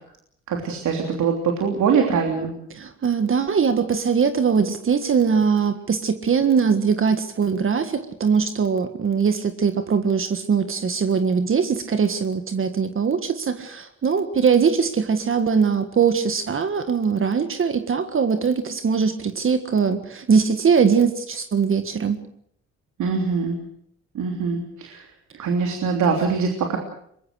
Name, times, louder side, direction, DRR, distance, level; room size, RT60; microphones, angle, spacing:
voice 1, 0.5-2.5 23.0-23.6 24.1-25.1 25.4-26.8, right 5 dB, 75° right, 2 dB, 3.3 m, -23 dB
voice 2, 2.7-22.2, right 6 dB, 45° right, 8 dB, 1.7 m, -21 dB
23.5 x 21.0 x 6.4 m, 0.70 s
cardioid pair, 90°, 30 cm